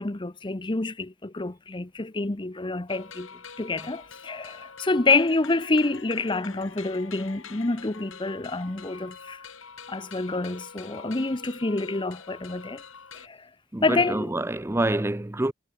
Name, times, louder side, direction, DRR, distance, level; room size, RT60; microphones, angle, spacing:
voice 1, 0.0-3.3 3.6-9.4 9.9-12.8 13.2-13.5 13.8-14.3, left 3 dB, 20° left, 0.8 m, -27 dB
sound 1, 2.9-13.3, left 5 dB, 65° left, 3.1 m, -45 dB
voice 2, 13.7-15.5, right 1 dB, 10° right, 0.5 m, -27 dB
head